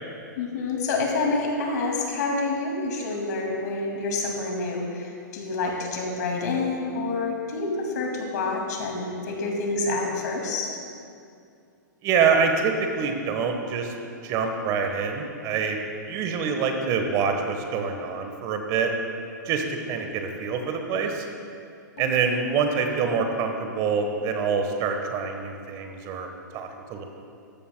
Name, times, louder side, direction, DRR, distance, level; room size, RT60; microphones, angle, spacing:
voice 1, 0.4-10.7 22.0-22.2, left 3 dB, 60° left, 1 dB, 2.3 m, -28 dB
voice 2, 12.0-13.9 14.2-15.8 16.1-18.9 19.4-21.2 22.0-27.0, right 5 dB, 35° right, 4 dB, 1.2 m, -26 dB
14.0 x 13.0 x 2.2 m, 2.4 s
hypercardioid pair, 120°, 10 cm